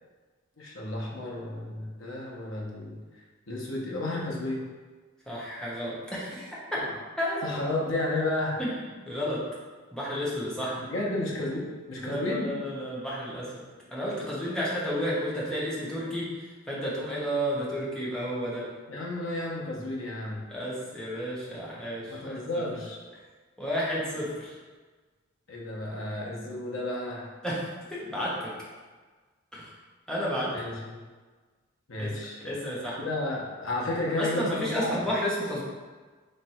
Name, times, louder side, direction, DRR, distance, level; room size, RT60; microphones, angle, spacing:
voice 1, 0.6-3.0 3.5-4.6 7.4-8.6 10.9-12.5 18.9-20.5 22.1-23.0 25.5-27.3 30.5-31.0 31.9-32.8 33.0-35.0, left 2 dB, 75° left, -3 dB, 1.0 m, -32 dB
voice 2, 5.3-6.6 7.2-7.5 8.6-8.8 9.1-9.4 9.9-10.9 12.0-13.5 13.9-18.6 20.5-22.6 23.6-24.6 27.4-28.5 29.5-29.7 30.1-30.5 32.0-32.1 32.4-33.1 34.2-35.6, equal, 5° left, -7 dB, 1.0 m, -32 dB
3.4 x 3.3 x 4.3 m, 1.4 s
head